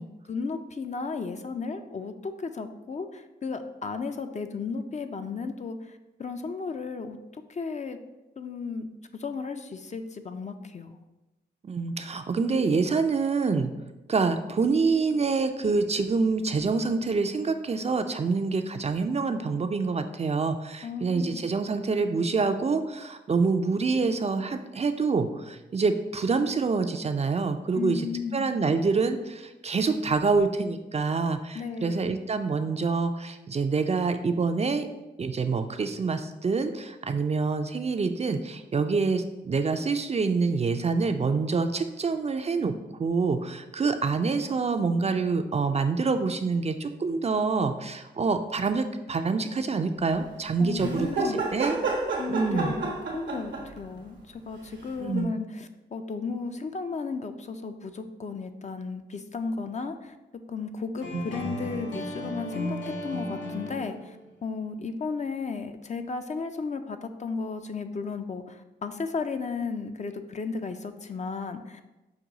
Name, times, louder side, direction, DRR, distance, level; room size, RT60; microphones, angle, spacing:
voice 1, 0.0-7.2 7.5-8.0 8.4-11.0 20.8-21.5 27.7-28.6 31.5-32.1 50.6-51.4 52.1-60.2 60.5-64.2 64.4-71.8, left 4 dB, 40° left, 8 dB, 0.4 m, -34 dB
voice 2, 11.6-13.7 14.1-28.0 28.3-34.9 35.2-42.7 43.0-51.8 52.3-52.7 55.0-55.3 61.1-61.2, right 4 dB, 35° right, 8 dB, 0.4 m, -26 dB
sound 1, 50.8-53.8 55.2-55.3, right 3 dB, 85° right, 0.9 m, -30 dB
sound 2, 61.0-64.2, left 1 dB, 80° left, 0.9 m, -35 dB
6.0 x 2.3 x 3.9 m, 1.0 s
cardioid pair, 50°, 19 cm